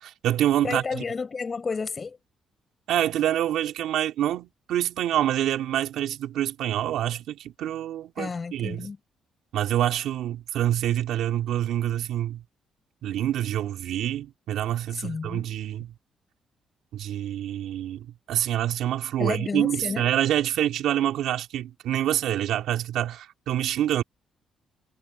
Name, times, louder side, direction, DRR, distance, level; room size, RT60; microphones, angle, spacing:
voice 1, 0.0-1.0 2.9-8.9 9.5-12.4 13.0-15.9 16.9-24.0, right 12 dB, 80° right, 2.8 m, -26 dB
voice 2, 0.6-2.2 8.2-9.0 14.9-15.4 19.2-20.1, left 4 dB, 35° left, 5.4 m, -31 dB
cardioid pair, 90°, 0 cm